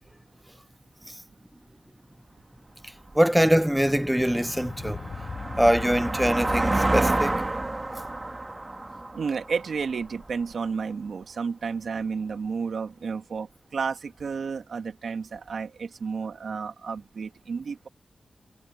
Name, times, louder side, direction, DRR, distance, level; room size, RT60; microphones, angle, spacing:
voice 1, 3.1-5.0 5.6-7.4, equal, 5° right, 0.7 m, -23 dB
sound 1, 3.1-3.2 3.7-10.3, right 2 dB, 20° right, 2.0 m, -29 dB
sound 2, 3.7-10.2 11.0-11.1, left 6 dB, 80° left, 4.0 m, -41 dB
voice 2, 9.1-17.9, right 5 dB, 75° right, 1.9 m, -31 dB
wide cardioid pair, 165°, 0 cm